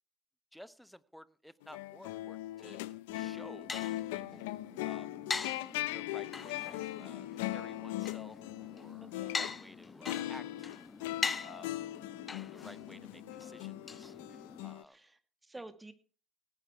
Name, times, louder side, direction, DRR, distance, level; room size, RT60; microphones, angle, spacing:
voice 1, 0.5-2.8 3.1-3.8 4.1-4.6 4.8-5.1 5.9-8.4 8.7-10.7 11.4-11.7 12.3-14.1 14.6-15.0, equal, ahead, 16 dB, 1.1 m, -54 dB
sound 1, 1.6-9.6 10.0-14.8, left 16 dB, 75° left, 0.6 m, -40 dB
sound 2, 3.1-14.7, left 4 dB, 30° left, 1.4 m, -42 dB
voice 2, 9.0-9.4 14.8-15.9, right 2 dB, 15° right, 9 dB, 2.4 m, -51 dB
18.0 x 11.0 x 4.7 m, 0.37 s
hypercardioid pair, 55°, 0 cm